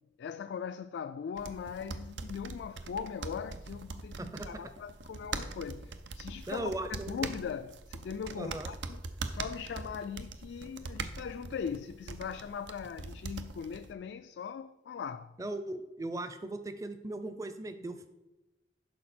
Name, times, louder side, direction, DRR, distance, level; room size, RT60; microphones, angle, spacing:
voice 1, 0.2-15.3, left 7 dB, 80° left, 0.3 m, -40 dB
sound 1, 1.4-13.9, right 4 dB, 90° right, 0.6 m, -42 dB
voice 2, 6.5-7.1 8.4-8.7 15.4-18.1, right 2 dB, 20° right, 0.5 m, -38 dB
11.0 x 5.1 x 4.3 m
head